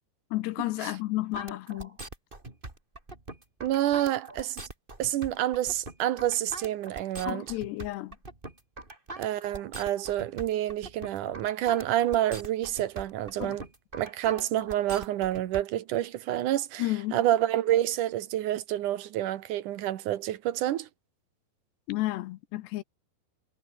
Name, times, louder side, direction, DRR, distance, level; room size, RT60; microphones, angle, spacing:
voice 1, 0.3-1.9 7.2-8.2 13.4-13.6 16.8-17.2 21.9-22.8, left 17 dB, 80° left, 2.8 m, -32 dB
hip bye, 1.3-15.6, right 2 dB, 15° right, 3.0 m, -42 dB
voice 2, 3.6-4.6 5.0-7.5 9.2-13.6 13.9-20.9, right 13 dB, 70° right, 2.0 m, -28 dB
omnidirectional pair, 5.1 m